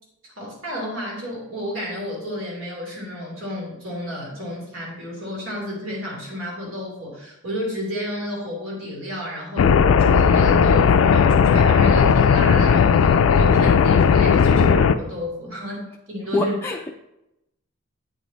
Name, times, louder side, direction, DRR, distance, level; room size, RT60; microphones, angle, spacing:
voice 1, 0.4-9.7 10.0-16.5, equal, 85° right, -3 dB, 2.8 m, -31 dB
sound 1, 9.6-14.9, left 6 dB, 85° left, 0.4 m, -16 dB
voice 2, 16.3-16.9, left 2 dB, 10° left, -1 dB, 0.3 m, -23 dB
8.0 x 5.1 x 4.0 m, 0.89 s
head